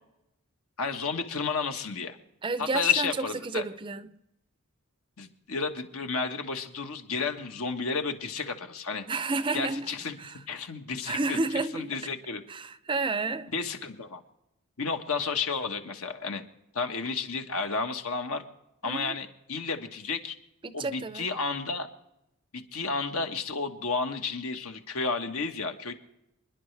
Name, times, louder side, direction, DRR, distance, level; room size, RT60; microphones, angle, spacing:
voice 1, 0.8-2.2 2.6-3.6 5.2-9.0 9.5-10.2 10.5-12.4 13.5-14.2 14.8-16.4 16.7-18.4 18.8-20.3 20.7-21.9 22.5-25.9, left 4 dB, 75° left, 1.5 m, -32 dB
voice 2, 2.4-3.1 3.4-4.1 9.1-9.9 10.2-10.3 11.1-11.9 12.5-13.5 18.8-19.2 20.6-21.3, right 3 dB, 20° right, 0.5 m, -31 dB
28.5 x 10.5 x 3.3 m
head